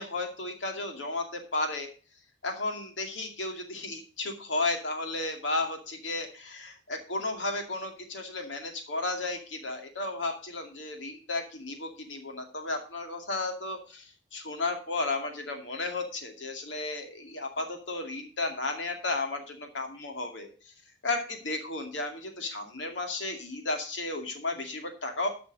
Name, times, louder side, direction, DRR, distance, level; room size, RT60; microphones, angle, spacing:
voice 1, 0.0-1.9 2.4-20.7 21.0-25.3, left 2 dB, 90° left, 4 dB, 2.3 m, -33 dB
10.5 x 6.1 x 5.1 m, 0.37 s
head